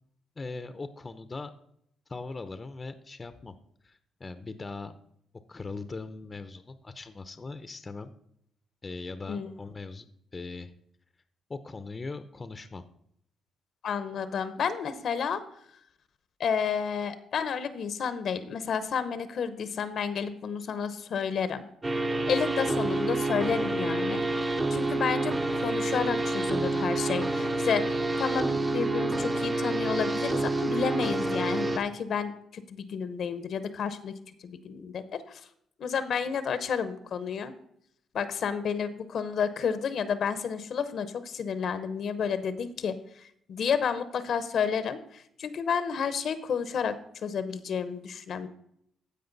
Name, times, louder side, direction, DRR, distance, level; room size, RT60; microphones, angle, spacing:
voice 1, 0.4-1.5 2.1-3.5 3.8-4.9 5.5-8.1 8.8-10.0 10.3-10.7 11.5-12.8, left 3 dB, 30° left, 10 dB, 0.6 m, -40 dB
voice 2, 13.8-15.4 16.4-21.7 22.3-24.2 24.7-34.1 34.4-35.4 35.8-37.5 38.1-42.9 43.5-46.9 47.2-48.5, left 6 dB, 60° left, 12 dB, 0.8 m, -31 dB
sound 1, 21.8-31.8, right 2 dB, 25° right, 0.8 m, -28 dB
15.0 x 5.1 x 4.0 m, 0.72 s
cardioid pair, 90°, 0 cm